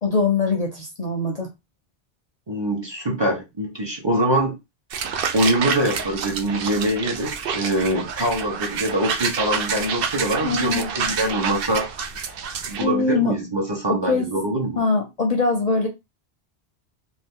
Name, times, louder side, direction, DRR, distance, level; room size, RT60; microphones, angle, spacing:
voice 1, 0.0-1.5 10.4-10.9 12.8-13.3 14.0-14.2 14.8-15.9, left 3 dB, 45° left, 0.6 m, -22 dB
voice 2, 2.5-4.5 5.3-11.9 12.6-14.8, right 1 dB, 25° right, 0.7 m, -24 dB
sound 1, 4.9-12.9, right 6 dB, 65° right, 0.7 m, -28 dB
2.7 x 2.5 x 3.6 m
omnidirectional pair, 1.1 m